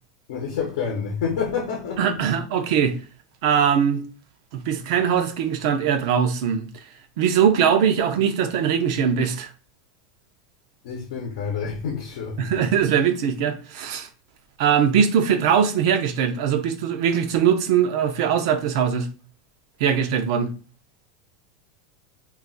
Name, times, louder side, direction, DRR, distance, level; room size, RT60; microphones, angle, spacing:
voice 1, 0.3-2.2 10.8-12.5, left 6 dB, 75° left, 0.7 m, -28 dB
voice 2, 2.0-3.0 3.4-4.0 4.5-6.7 7.2-9.5 12.4-14.1 14.6-19.1 19.8-20.5, right 8 dB, 65° right, 0.5 m, -21 dB
2.3 x 2.3 x 3.8 m
supercardioid pair, 140°, 3 cm